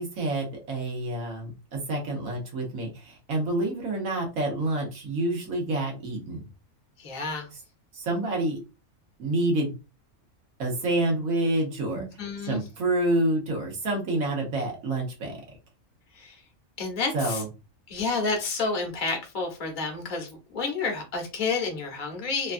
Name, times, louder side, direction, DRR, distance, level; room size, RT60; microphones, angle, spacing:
voice 1, 0.0-6.5 7.9-8.6 9.2-9.8 10.6-12.0 12.4-15.4 17.1-17.5, right 1 dB, 80° right, 0 dB, 1.4 m, -28 dB
voice 2, 7.0-7.5 11.9-12.6 16.1-16.4 16.8-17.4 17.9-22.5, left 4 dB, 40° left, 3 dB, 0.8 m, -30 dB
3.2 x 2.2 x 2.5 m, 0.30 s
omnidirectional pair, 1.4 m